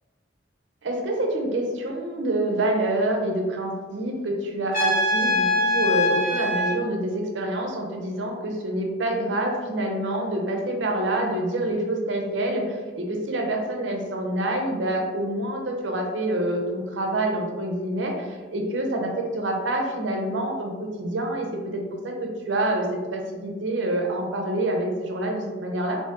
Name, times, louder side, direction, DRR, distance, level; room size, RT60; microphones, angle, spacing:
voice 1, 0.8-26.0, right 1 dB, 85° right, 2 dB, 0.6 m, -27 dB
Trumpet, 4.7-6.7, left 1 dB, 50° left, 1.0 m, -22 dB
2.8 x 2.7 x 3.5 m, 1.4 s
head